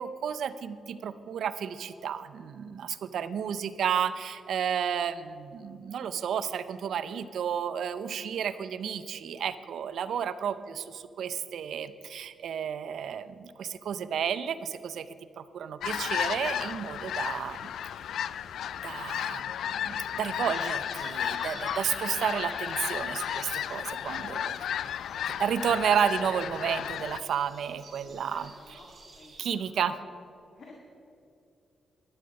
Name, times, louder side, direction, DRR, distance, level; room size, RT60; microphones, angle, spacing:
voice 1, 0.0-15.1 15.4-17.6 18.8-24.6 25.3-28.5 29.4-30.0, right 8 dB, 75° right, 14 dB, 0.6 m, -32 dB
sound 1, 15.8-27.2, left 10 dB, 80° left, 0.3 m, -33 dB
sound 2, 20.5-29.4, right 3 dB, 50° right, 2.5 m, -50 dB
voice 2, 28.0-28.9 29.1-29.7 30.5-30.7, left 3 dB, 60° left, -1 dB, 2.0 m, -53 dB
12.5 x 11.5 x 5.4 m, 2.7 s
cardioid pair, 75°, 0 cm